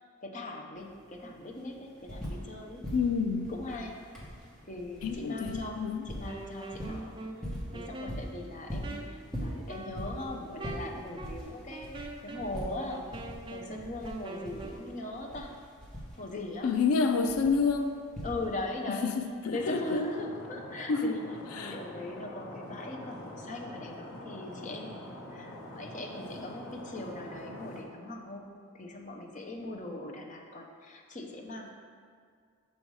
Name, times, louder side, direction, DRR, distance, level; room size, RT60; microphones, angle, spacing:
voice 1, 0.2-2.8 3.5-4.0 4.7-5.8 6.0-7.2 7.7-13.1 13.5-15.5 16.2-16.7 18.2-19.1 19.5-21.2 21.6-31.7, left 2 dB, 35° left, 1 dB, 0.7 m, -40 dB
sound 1, 0.8-0.9 1.1-2.6 2.8-18.8 19.9-20.0, equal, 5° left, 1.2 m, -42 dB
voice 2, 2.9-3.5 5.0-6.0 16.6-18.0 19.2-20.0 20.9-21.2 21.5-21.8, left 5 dB, 85° left, 6 dB, 0.4 m, -28 dB
Wind instrument woodwind instrument, 6.1-14.9, right 2 dB, 20° right, 0.3 m, -44 dB
Stream, 19.5-27.8, left 1 dB, 65° left, 1.2 m, -45 dB
6.3 x 5.5 x 4.7 m, 2.1 s
head